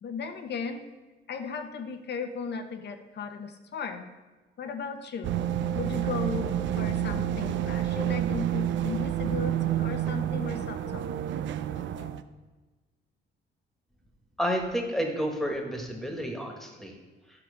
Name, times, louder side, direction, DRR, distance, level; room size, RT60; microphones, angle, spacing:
voice 1, 0.0-0.8 1.3-4.1 4.6-5.3 5.7-11.1 11.7-12.2, left 5 dB, 60° left, 7 dB, 1.0 m, -36 dB
sound 1, 5.2-12.2, right 10 dB, 70° right, 0.5 m, -29 dB
voice 2, 14.4-16.9, equal, ahead, 2 dB, 1.7 m, -30 dB
11.0 x 5.9 x 5.1 m, 1.2 s
cardioid pair, 90°, 20 cm